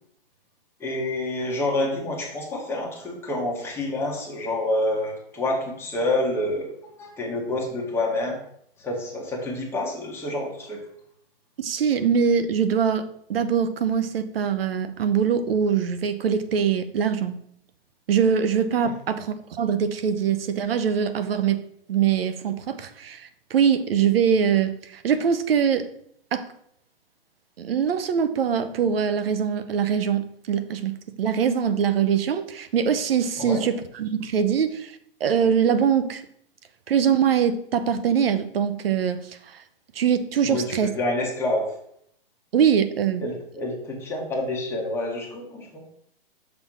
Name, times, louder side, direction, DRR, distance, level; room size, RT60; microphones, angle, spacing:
voice 1, 0.8-6.7 7.0-8.4 8.8-10.8 33.4-33.6 40.4-41.7 43.2-45.9, left 1 dB, 10° left, 1.4 m, -28 dB
voice 2, 11.6-17.4 18.1-25.9 26.3-26.5 27.6-34.9 35.2-36.2 36.9-39.6 39.9-40.9 42.5-43.2, right 7 dB, 75° right, 0.8 m, -23 dB
6.0 x 3.5 x 6.0 m
hypercardioid pair, 155°, 29 cm